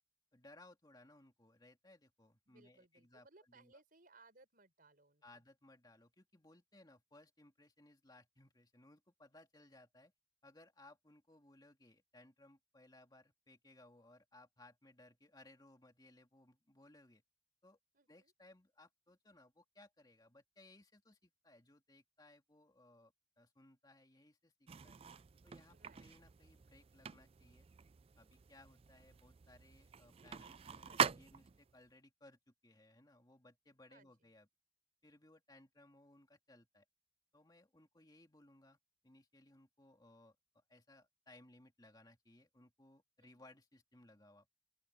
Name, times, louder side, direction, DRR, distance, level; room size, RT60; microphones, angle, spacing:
voice 1, 0.3-3.7 5.2-10.1 10.4-17.2 17.6-17.8 18.1-25.0 25.4-27.7 28.2-34.5 35.0-36.8 37.3-38.8 39.0-44.5, left 2 dB, 20° left, 2.4 m, -64 dB
voice 2, 2.5-5.4 17.9-18.3 25.7-26.1 33.9-34.3 43.2-43.5, right 3 dB, 45° right, 6.2 m, -66 dB
sound 1, 24.7-31.7, right 7 dB, 30° right, 0.4 m, -43 dB
open air
head